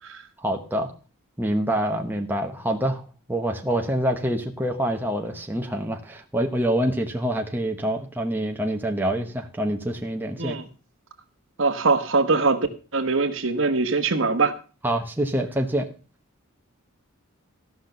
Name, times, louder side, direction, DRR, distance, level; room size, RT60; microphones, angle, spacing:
voice 1, 0.4-0.9 1.4-3.0 3.3-10.6 14.8-15.9, right 1 dB, 10° right, 3 dB, 1.0 m, -26 dB
voice 2, 11.6-12.7 12.9-14.5, right 3 dB, 60° right, 8 dB, 1.2 m, -22 dB
14.5 x 5.9 x 6.6 m, 0.36 s
head